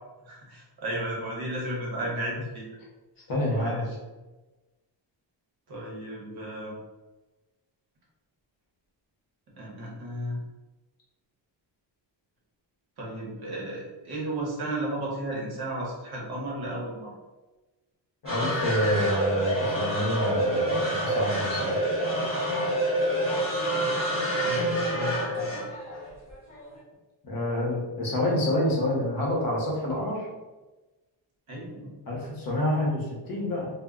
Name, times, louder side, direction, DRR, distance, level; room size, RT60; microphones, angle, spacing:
voice 1, 0.2-2.7 3.5-3.9 5.7-6.7 9.6-10.4 13.0-17.1 24.4-25.6 31.5-32.0, right 1 dB, 55° right, -4 dB, 0.9 m, -34 dB
voice 2, 3.3-3.8 18.2-21.8 27.2-30.3 32.1-33.7, left 1 dB, 50° left, -3 dB, 0.8 m, -27 dB
sound 1, 18.3-26.7, right 1 dB, 15° right, 1.0 m, -27 dB
2.1 x 2.0 x 3.5 m, 1.2 s
wide cardioid pair, 180°, 45 cm